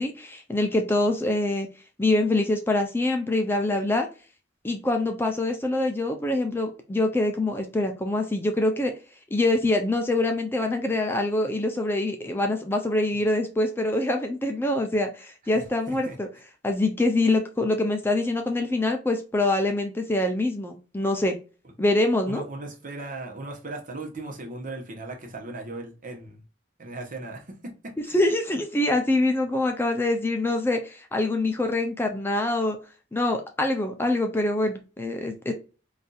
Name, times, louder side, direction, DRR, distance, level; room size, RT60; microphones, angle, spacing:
voice 1, 0.0-1.7 2.0-4.1 4.6-8.9 9.3-16.3 16.6-21.4 21.8-22.4 28.1-32.8 33.1-35.5, left 2 dB, 10° left, 0.4 m, -25 dB
voice 2, 15.5-16.2 22.3-26.4 26.8-28.2, right 2 dB, 45° right, 0.9 m, -38 dB
4.0 x 2.6 x 2.3 m
head